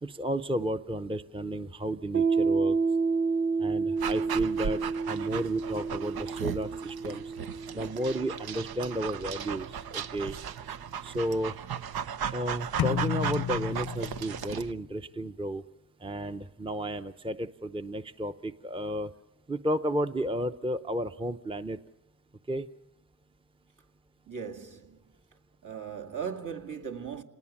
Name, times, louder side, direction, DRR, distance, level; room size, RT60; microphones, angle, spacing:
voice 1, 0.0-2.8 3.6-4.8 5.1-7.3 7.7-9.7 9.9-10.3 11.0-11.5 12.3-15.6 16.0-19.1 19.5-21.8 22.5-22.7, right 1 dB, 15° right, 0.7 m, -32 dB
Piano, 2.1-9.4, right 4 dB, 35° right, 1.2 m, -30 dB
Dog, 4.0-14.7, right 8 dB, 80° right, 0.8 m, -36 dB
sound 1, 12.8-14.7, left 10 dB, 85° left, 0.7 m, -32 dB
voice 2, 24.3-25.1 25.6-27.2, right 7 dB, 55° right, 2.2 m, -38 dB
27.0 x 20.0 x 7.3 m
cardioid pair, 75°, 36 cm